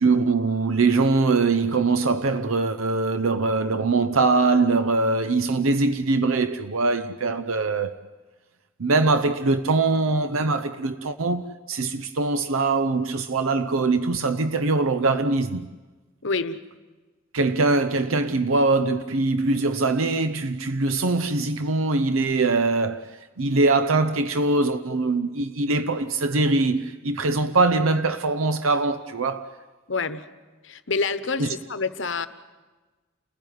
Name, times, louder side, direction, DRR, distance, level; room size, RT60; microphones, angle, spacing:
voice 1, 0.0-8.0 8.8-15.7 17.3-29.5 31.4-31.5, right 3 dB, 85° right, 0.8 m, -22 dB
voice 2, 16.2-16.6 29.9-30.3 30.6-32.3, left 4 dB, 65° left, 1.0 m, -27 dB
30.0 x 15.5 x 9.4 m
head